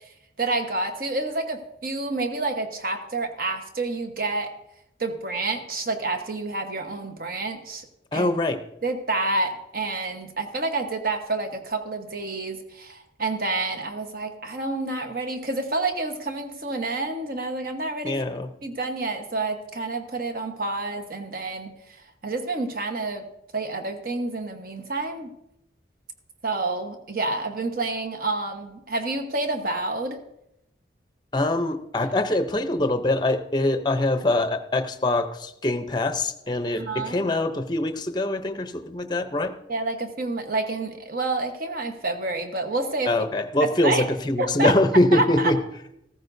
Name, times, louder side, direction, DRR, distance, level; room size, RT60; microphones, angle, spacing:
voice 1, 0.4-4.5 5.0-7.8 8.1-8.3 8.8-18.2 18.6-21.7 22.2-23.3 23.5-25.3 26.4-30.2 36.7-37.3 39.7-43.1 43.8-44.1 44.4-44.7 45.1-45.5, right 2 dB, 50° right, 5 dB, 1.1 m, -28 dB
voice 2, 8.1-8.6 18.0-18.5 31.3-39.5 43.1-45.6, left 1 dB, 25° left, 8 dB, 0.6 m, -23 dB
15.0 x 14.0 x 2.6 m, 0.84 s
head